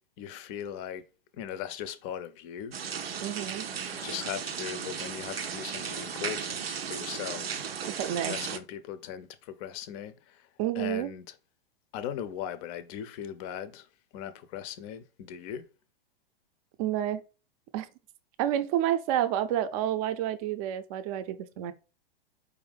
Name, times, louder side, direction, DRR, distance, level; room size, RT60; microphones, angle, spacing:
voice 1, 0.2-1.0 1.3-2.7 3.9-7.6 8.2-10.4 10.8-11.3 11.9-13.9 14.1-15.7, left 9 dB, 35° left, 0.5 m, -39 dB
sound 1, 2.7-8.6, right 7 dB, 85° right, 0.5 m, -35 dB
voice 2, 3.2-3.7 8.0-8.4 10.6-11.1 16.8-17.2 17.7-17.9 18.4-21.7, right 11 dB, 35° right, 0.5 m, -29 dB
4.7 x 2.5 x 3.4 m
figure-of-eight pair, 105°, 29 cm